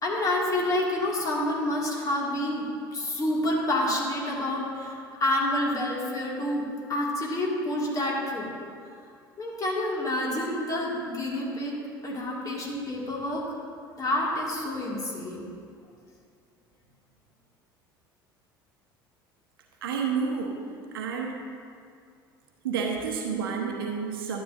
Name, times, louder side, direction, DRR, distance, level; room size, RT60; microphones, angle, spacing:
voice 1, 0.0-8.5 9.4-11.8 12.0-13.4 14.0-15.5, left 1 dB, 30° left, -3 dB, 2.3 m, -28 dB
voice 2, 19.8-20.6 20.9-21.4 22.6-24.4, right 6 dB, 75° right, 1 dB, 1.1 m, -30 dB
12.0 x 8.7 x 2.7 m, 2.3 s
figure-of-eight pair, 65°, 12 cm